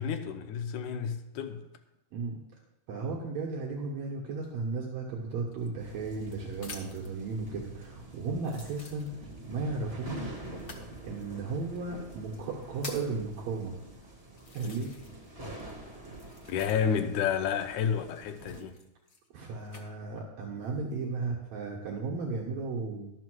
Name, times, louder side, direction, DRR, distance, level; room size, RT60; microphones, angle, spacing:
voice 1, 0.0-1.6 16.5-18.8, left 7 dB, 90° left, 7 dB, 2.3 m, -30 dB
voice 2, 2.9-10.4 11.0-13.7 14.5-14.9 16.5-16.6 19.3-23.1, right 3 dB, 70° right, -2 dB, 2.5 m, -35 dB
sound 1, 5.5-7.1 7.8-7.9 8.4-9.5 10.5-10.9 11.8-11.9 12.4-13.2 13.9-14.0 14.4-15.3 15.5-17.1 18.3-19.9 20.5-21.0, left 3 dB, 55° left, 0.7 m, -48 dB
sound 2, 5.8-18.6, right 1 dB, 15° right, 1.5 m, -46 dB
12.0 x 5.7 x 6.2 m, 0.90 s
omnidirectional pair, 3.4 m